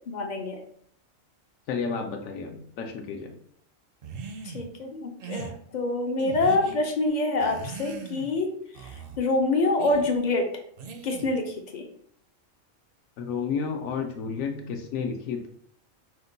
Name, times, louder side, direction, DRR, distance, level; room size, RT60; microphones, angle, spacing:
voice 1, 0.1-0.6 4.4-10.5 11.0-11.9, left 2 dB, 55° left, 4 dB, 0.5 m, -26 dB
voice 2, 1.7-3.4 13.2-15.5, left 5 dB, 80° left, 3 dB, 1.0 m, -31 dB
sound 1, 4.0-4.7 5.2-5.5 6.2-6.8 7.4-8.4 8.7-9.2 9.8-10.1 10.8-11.4, right 5 dB, 60° right, 0.6 m, -39 dB
4.9 x 2.2 x 3.8 m, 0.64 s
omnidirectional pair, 1.4 m